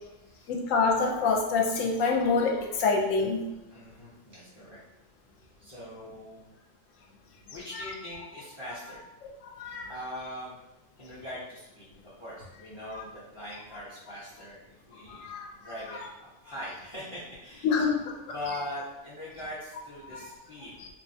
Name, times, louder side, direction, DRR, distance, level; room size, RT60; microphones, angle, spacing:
voice 1, 0.5-3.4 7.7-7.8 9.4-9.9 12.9-13.0 15.1-15.5 15.9-16.0 17.6-18.1 20.1-20.2 20.8-20.9, left 4 dB, 85° left, 1 dB, 1.0 m, -26 dB
voice 2, 3.7-4.8 5.6-6.5 7.5-9.0 9.9-10.6 11.0-14.6 14.9-15.3 15.5-17.9 18.3-20.8, left 1 dB, 30° left, -8 dB, 0.6 m, -41 dB
3.3 x 2.1 x 2.6 m, 0.98 s
omnidirectional pair, 1.3 m